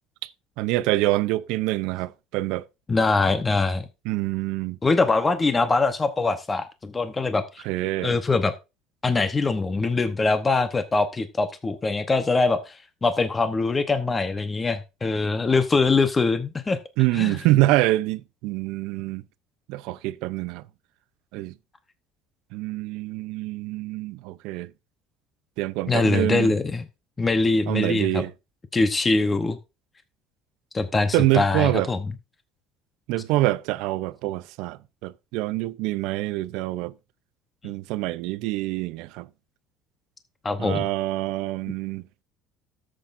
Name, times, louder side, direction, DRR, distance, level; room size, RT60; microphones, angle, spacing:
voice 1, 0.6-2.6 4.1-4.8 7.7-8.2 17.0-19.2 19.7-20.6 21.3-21.5 22.5-24.7 25.6-26.5 27.7-28.3 31.1-31.9 33.1-36.9 37.6-39.3 40.6-42.0, right 17 dB, 75° right, 0.5 m, -25 dB
voice 2, 2.9-3.8 4.8-7.6 8.0-8.5 9.0-16.8 17.1-17.4 25.9-26.9 27.2-28.2 28.7-29.6 30.7-32.0 40.4-40.9, left 3 dB, 20° left, 0.9 m, -23 dB
13.0 x 7.6 x 2.6 m
cardioid pair, 125°, 0 cm